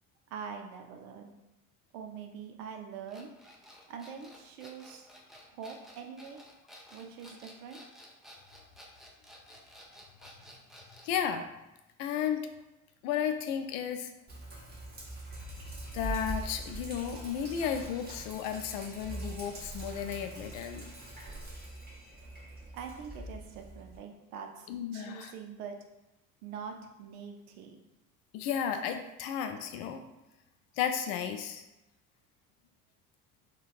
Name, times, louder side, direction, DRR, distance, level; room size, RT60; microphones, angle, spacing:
voice 1, 0.3-1.4 1.9-3.3 3.9-5.1 5.5-6.4 6.9-7.8 22.7-25.8 26.4-27.8, right 6 dB, 70° right, 4 dB, 0.6 m, -44 dB
sound 1, 3.1-11.1, equal, ahead, 0.3 m, -53 dB
voice 2, 11.0-11.5 12.0-12.4 13.0-14.1 15.9-20.8 24.7-25.3 28.3-30.0 30.8-31.6, left 8 dB, 65° left, 7 dB, 0.5 m, -33 dB
Sink (filling or washing), 14.3-24.0, right 2 dB, 20° right, 0.9 m, -43 dB
Alarm, 15.3-23.0, left 1 dB, 20° left, 0.7 m, -54 dB
3.9 x 2.3 x 2.4 m, 0.96 s
hypercardioid pair, 60°, 44 cm